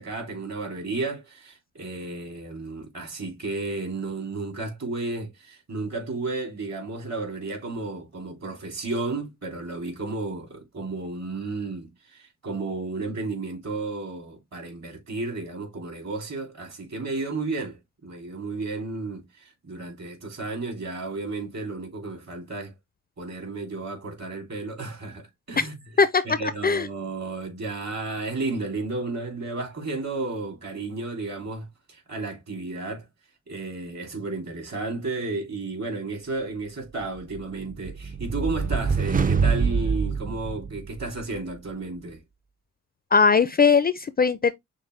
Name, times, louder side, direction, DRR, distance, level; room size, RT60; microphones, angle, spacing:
voice 1, 0.0-22.7 23.2-25.8 26.2-33.0 33.5-42.2, right 3 dB, 55° right, 3.1 m, -33 dB
sound 1, 37.3-41.2, right 5 dB, 25° right, 0.5 m, -25 dB
voice 2, 43.1-44.5, left 5 dB, 30° left, 0.4 m, -19 dB
6.3 x 2.1 x 3.2 m
cardioid pair, 80°, 31 cm